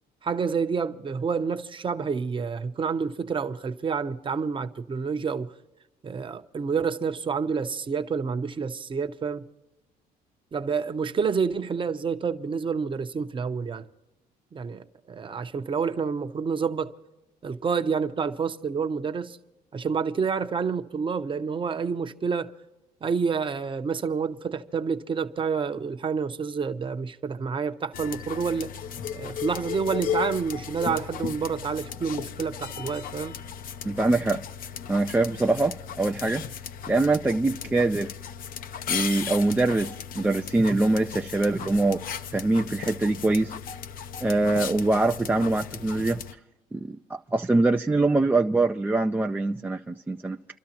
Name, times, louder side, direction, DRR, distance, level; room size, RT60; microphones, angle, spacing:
voice 1, 0.2-5.5 6.0-9.4 10.5-13.9 14.5-16.9 17.4-19.4 19.7-22.5 23.0-28.7 29.1-33.3, right 5 dB, 30° right, 0.8 m, -28 dB
sound 1, 27.9-46.3, left 8 dB, 55° left, 0.7 m, -36 dB
voice 2, 33.8-34.4 34.9-36.4 36.9-38.1 38.9-43.5 44.2-46.2 46.7-50.4, right 2 dB, 10° right, 0.4 m, -24 dB
28.5 x 12.5 x 2.9 m
cardioid pair, 110°, 17 cm